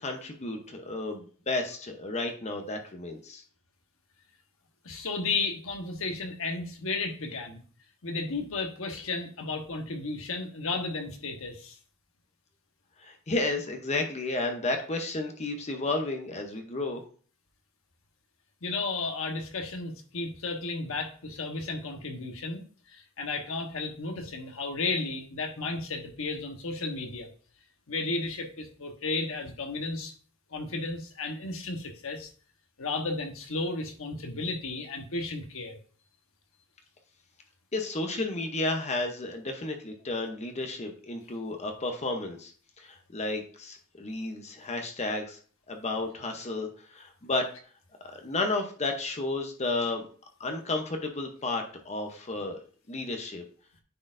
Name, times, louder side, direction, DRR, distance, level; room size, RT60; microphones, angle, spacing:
voice 1, 0.0-3.4 13.0-17.0 37.7-42.5 42.8-45.4 45.7-47.5 48.1-50.1 50.4-52.6 52.9-53.4, left 2 dB, 30° left, 4 dB, 0.8 m, -32 dB
voice 2, 4.8-7.6 8.0-11.7 18.6-22.6 22.9-27.3 27.9-30.1 30.5-32.3 32.8-35.8, left 3 dB, 65° left, 3 dB, 1.2 m, -33 dB
9.5 x 4.4 x 2.6 m, 0.43 s
head